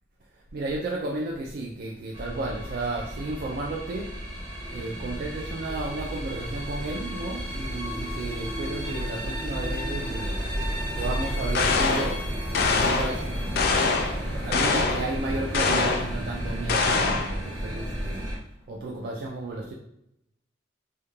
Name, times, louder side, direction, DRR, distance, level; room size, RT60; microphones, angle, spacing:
voice 1, 0.3-4.1 4.7-10.4 10.9-12.2 12.5-13.3 14.4-18.3 18.7-19.7, right 2 dB, 55° right, -1 dB, 0.3 m, -33 dB
sound 1, 2.1-18.4, equal, 25° right, 0.8 m, -32 dB
sound 2, 11.5-12.2 12.5-13.2 13.6-14.2 14.5-15.1 15.5-16.1 16.7-17.3, left 4 dB, 55° left, 0.3 m, -24 dB
2.4 x 2.1 x 3.0 m, 0.80 s
head